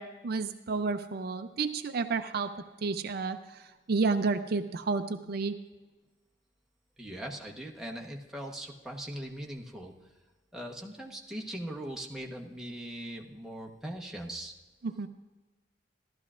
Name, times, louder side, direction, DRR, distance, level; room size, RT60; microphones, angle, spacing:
voice 1, 0.0-2.5 2.8-5.6 14.8-15.1, right 4 dB, 55° right, 9 dB, 0.4 m, -31 dB
voice 2, 7.0-9.9 10.5-14.5, right 1 dB, 5° right, -1 dB, 1.0 m, -40 dB
15.5 x 12.0 x 2.5 m, 1.2 s
head